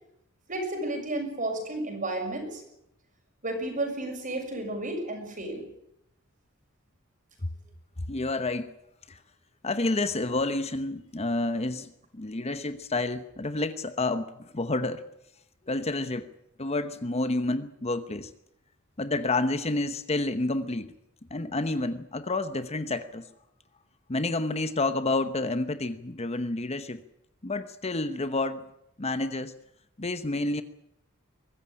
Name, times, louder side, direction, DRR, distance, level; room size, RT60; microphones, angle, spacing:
voice 1, 0.5-2.6 3.4-5.6, right 2 dB, 40° right, 4 dB, 6.5 m, -32 dB
voice 2, 8.1-8.7 9.1-9.2 9.6-15.0 15.7-16.3 16.6-18.3 19.0-20.9 21.3-23.3 24.1-27.0 27.4-28.7 29.0-29.5 30.0-30.6, left 2 dB, 30° left, 11 dB, 1.0 m, -29 dB
23.0 x 14.5 x 9.9 m, 0.82 s
head